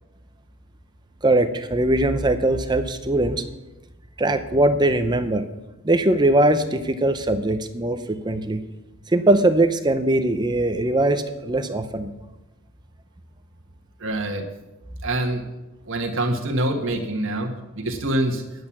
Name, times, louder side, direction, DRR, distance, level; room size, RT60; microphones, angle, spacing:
voice 1, 1.2-3.5 4.2-5.5 5.8-8.6 9.1-12.1, right 1 dB, 20° right, 9 dB, 0.6 m, -21 dB
voice 2, 14.0-14.4 15.0-15.4 15.9-18.4, right 1 dB, 60° right, 2 dB, 1.5 m, -25 dB
11.0 x 7.9 x 7.2 m, 1.0 s
head